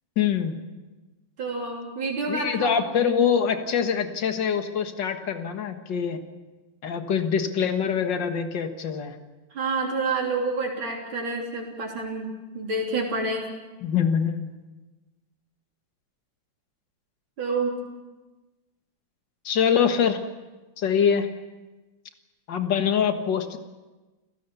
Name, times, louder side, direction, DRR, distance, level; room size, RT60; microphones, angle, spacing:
voice 1, 0.2-0.5 2.3-6.2 6.8-9.2 13.8-14.6 19.5-20.2 20.8-21.3 22.5-23.6, left 7 dB, 65° left, 7 dB, 2.2 m, -24 dB
voice 2, 1.4-2.8 3.0-3.1 9.5-13.5 17.4-17.8, right 3 dB, 85° right, -2 dB, 4.1 m, -28 dB
30.0 x 17.0 x 7.0 m, 1.2 s
omnidirectional pair, 2.1 m